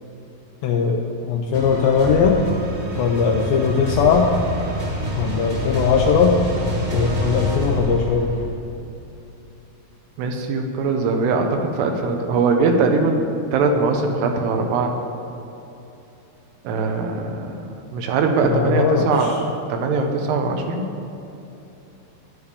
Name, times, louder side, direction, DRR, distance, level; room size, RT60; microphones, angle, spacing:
voice 1, 0.6-2.5 3.0-4.3 5.2-6.4 6.9-8.3 18.4-19.3, left 6 dB, 80° left, 1 dB, 2.2 m, -19 dB
sound 1, 1.5-8.5, left 1 dB, 35° right, 1.5 m, -26 dB
voice 2, 10.2-14.9 16.6-17.6 17.9-20.9, right 4 dB, 85° right, 3 dB, 2.9 m, -21 dB
14.0 x 9.8 x 3.5 m, 2.9 s
omnidirectional pair, 4.7 m